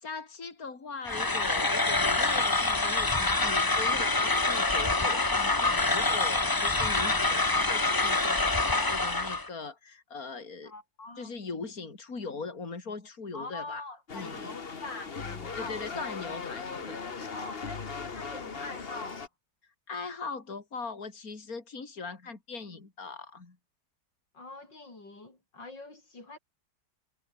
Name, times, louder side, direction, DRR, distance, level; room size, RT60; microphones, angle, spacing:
voice 1, 0.0-10.7 11.2-13.8 14.1-14.5 15.5-17.3 19.9-23.6, left 4 dB, 50° left, 3.9 m, -40 dB
sound 1, 1.1-9.5, left 2 dB, 15° left, 0.8 m, -26 dB
voice 2, 10.6-11.3 13.3-15.8 17.3-19.3 24.3-26.4, left 2 dB, 80° left, 7.2 m, -44 dB
sound 2, 14.1-19.3, left 5 dB, 35° left, 1.6 m, -38 dB
omnidirectional pair, 1.9 m